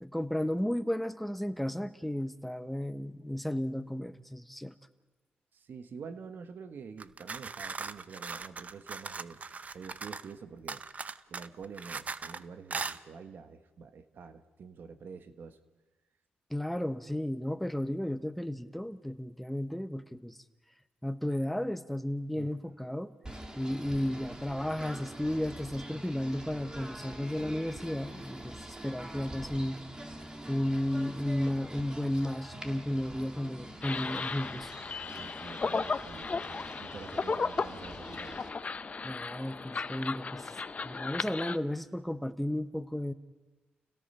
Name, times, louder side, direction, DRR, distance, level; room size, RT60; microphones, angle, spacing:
voice 1, 0.0-4.7 16.5-20.4 21.0-23.1 23.6-28.6 28.8-29.8 30.5-34.7 39.0-43.1, left 1 dB, 5° left, 10 dB, 1.2 m, -33 dB
voice 2, 5.7-9.4 9.7-10.8 11.3-15.6 22.4-22.5 35.2-38.4, right 5 dB, 65° right, 9 dB, 1.4 m, -47 dB
sound 1, 7.0-10.3 10.7-12.4 12.7-13.0, right 4 dB, 40° right, 0.7 m, -39 dB
Singing / Bird, 23.2-38.5, right 1 dB, 20° right, 2.3 m, -45 dB
sound 2, 33.8-41.6, left 4 dB, 40° left, 0.8 m, -35 dB
29.5 x 17.5 x 5.7 m, 1.2 s
cardioid pair, 70°, 4 cm